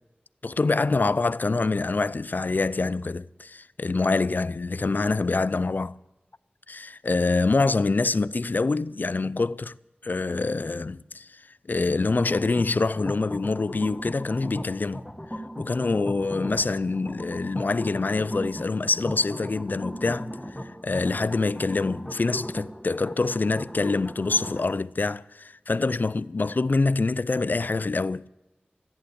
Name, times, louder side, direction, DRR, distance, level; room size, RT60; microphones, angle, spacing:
voice 1, 0.4-6.0 6.7-9.8 10.0-11.4 11.7-15.0 15.6-20.3 20.6-28.3, left 3 dB, 55° left, 0.4 m, -25 dB
sound 1, 12.1-24.7, equal, 10° left, 1.4 m, -38 dB
14.0 x 10.5 x 8.4 m
wide cardioid pair, 55°, 4 cm